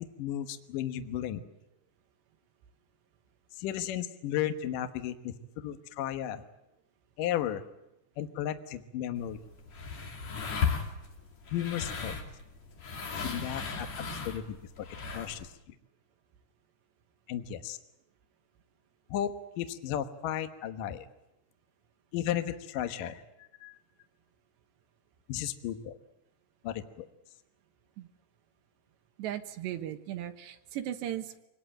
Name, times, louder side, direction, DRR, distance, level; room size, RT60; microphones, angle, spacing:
voice 1, 0.2-1.4 3.6-6.4 7.2-7.6 8.2-9.4 11.5-12.1 13.2-14.9 15.1-15.8 17.3-17.8 19.1-21.1 22.1-23.2 23.6-23.8 25.3-26.0 26.6-27.1, left 11 dB, 75° left, 8 dB, 2.0 m, -34 dB
sound 1, 9.2-15.5, left 5 dB, 40° left, 3.2 m, -36 dB
voice 2, 29.2-31.4, right 12 dB, 75° right, 7 dB, 3.0 m, -37 dB
25.0 x 20.0 x 8.9 m, 0.89 s
omnidirectional pair, 5.8 m